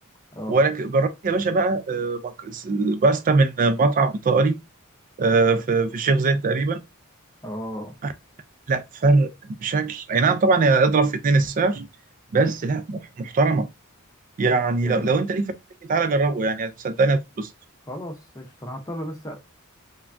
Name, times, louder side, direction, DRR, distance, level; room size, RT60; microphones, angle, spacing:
voice 1, 0.5-4.6 5.2-6.8 8.7-9.3 9.6-11.9 12.3-13.7 14.4-15.5 15.9-17.5, right 3 dB, 40° right, 0.4 m, -21 dB
voice 2, 7.4-7.9 14.8-15.1 17.9-19.4, equal, 15° left, 0.6 m, -34 dB
3.2 x 2.2 x 2.4 m
head